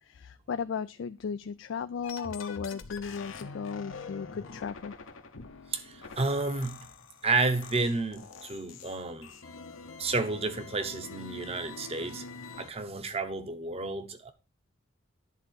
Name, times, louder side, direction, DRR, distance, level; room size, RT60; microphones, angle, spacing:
voice 1, 0.0-5.0, left 6 dB, 65° left, 0.3 m, -36 dB
sound 1, 2.0-12.7, left 4 dB, 80° left, 1.0 m, -45 dB
voice 2, 5.7-6.9 7.2-9.3 10.0-12.2 12.6-14.3, right 3 dB, 30° right, 1.0 m, -31 dB
10.5 x 3.8 x 6.4 m
head